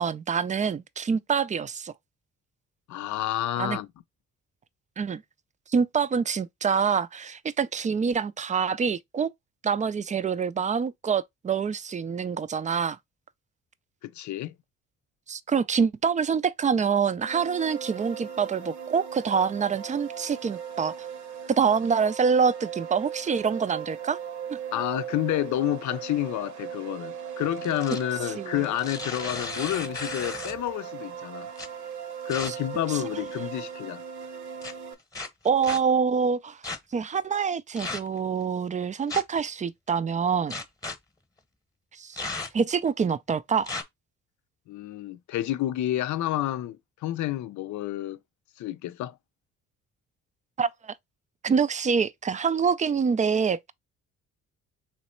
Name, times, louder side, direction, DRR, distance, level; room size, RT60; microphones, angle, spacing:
voice 1, 0.0-1.9 3.6-3.8 5.0-5.2 5.7-9.3 9.6-13.0 15.3-21.1 21.5-24.2 24.5-24.6 28.4-28.6 32.5-32.6 32.9-33.2 35.4-36.6 36.9-40.6 41.9-42.2 42.5-43.7 50.6-50.9 51.4-53.7, right 6 dB, 25° right, 0.4 m, -26 dB
voice 2, 2.9-3.9 14.0-14.5 24.7-31.5 32.3-34.0 44.7-48.2 48.6-49.2, left 14 dB, 70° left, 0.5 m, -29 dB
sound 1, 17.2-34.9, right 8 dB, 75° right, 1.0 m, -38 dB
sound 2, 27.5-28.1 28.6-30.7 31.6-31.7 32.3-32.5 33.2-33.6 34.6-34.7 35.1-35.8 36.6-36.8 37.8-38.2 39.1-39.4 40.5-41.0 42.2-42.7 43.6-43.8, left 3 dB, 10° left, 0.9 m, -35 dB
3.2 x 3.1 x 4.3 m
cardioid pair, 90°, 30 cm